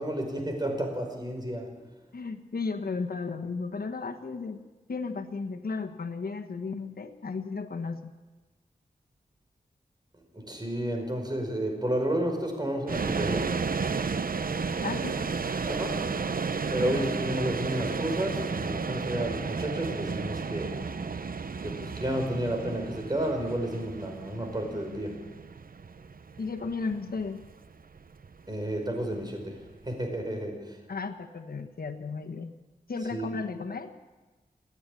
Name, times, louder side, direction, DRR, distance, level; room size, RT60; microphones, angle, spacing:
voice 1, 0.0-1.7 10.3-13.6 15.6-16.1 16.7-20.8 21.6-25.3 28.5-30.8 33.1-33.4, right 1 dB, 25° right, 3 dB, 5.4 m, -31 dB
voice 2, 2.1-4.6 4.9-8.1 14.8-15.3 16.9-17.3 20.8-20.9 26.4-27.4 30.9-32.5 32.9-33.9, left 4 dB, 75° left, 5 dB, 1.4 m, -34 dB
sound 1, 12.9-29.9, right 5 dB, 70° right, 0.8 m, -33 dB
28.0 x 9.9 x 9.9 m, 1.2 s
wide cardioid pair, 75°, 16 cm